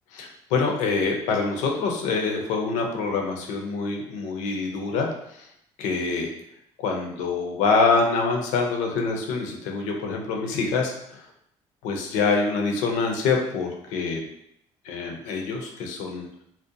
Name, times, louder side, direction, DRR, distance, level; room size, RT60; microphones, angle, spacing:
voice 1, 0.1-5.5 5.8-6.3 6.8-11.2 11.8-14.2 14.8-16.4, left 4 dB, 90° left, 2 dB, 0.5 m, -25 dB
2.5 x 2.1 x 2.6 m, 0.73 s
cardioid pair, 90°, 12 cm